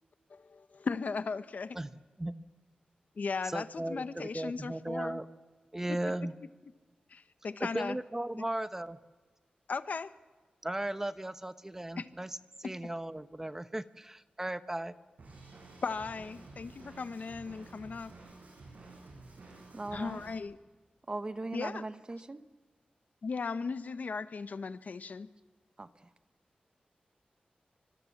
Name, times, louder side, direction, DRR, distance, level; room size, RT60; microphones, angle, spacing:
voice 1, 0.3-1.8 3.2-5.2 5.9-6.0 7.1-8.0 8.4-8.5 9.7-10.1 12.0-12.1 15.8-18.1 19.9-20.6 21.5-21.8 23.2-25.3, left 4 dB, 65° left, 1.0 m, -37 dB
voice 2, 3.4-5.3 5.7-6.3 7.6-9.0 10.6-14.9, right 1 dB, 15° right, 0.8 m, -36 dB
Drum kit, 15.2-20.4, right 3 dB, 65° right, 7.9 m, -51 dB
voice 3, 19.7-20.2 21.1-22.4 25.8-26.1, right 2 dB, 30° right, 1.0 m, -39 dB
26.5 x 25.0 x 7.3 m
wide cardioid pair, 130°, 3 cm